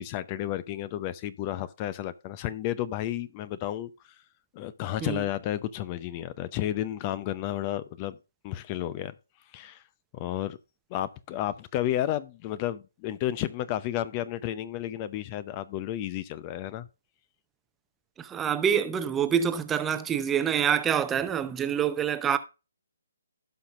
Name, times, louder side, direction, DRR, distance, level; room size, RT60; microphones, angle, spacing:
voice 1, 0.0-4.2 4.5-8.2 8.4-9.1 9.5-9.8 10.1-10.6 10.9-16.9, left 12 dB, 25° left, 0.6 m, -32 dB
voice 2, 18.2-22.4, right 8 dB, 10° right, 0.7 m, -26 dB
16.5 x 5.7 x 2.4 m
figure-of-eight pair, 140°, 0 cm